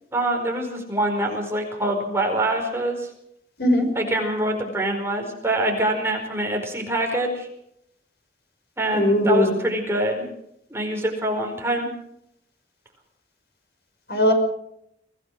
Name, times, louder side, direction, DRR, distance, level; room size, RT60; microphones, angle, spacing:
voice 1, 0.1-3.1 3.9-7.5 8.8-10.3 10.7-11.9, right 1 dB, 15° right, 1 dB, 4.8 m, -25 dB
voice 2, 8.9-9.5 14.1-14.3, left 1 dB, 65° left, 5 dB, 5.8 m, -19 dB
24.0 x 17.5 x 6.5 m, 0.75 s
head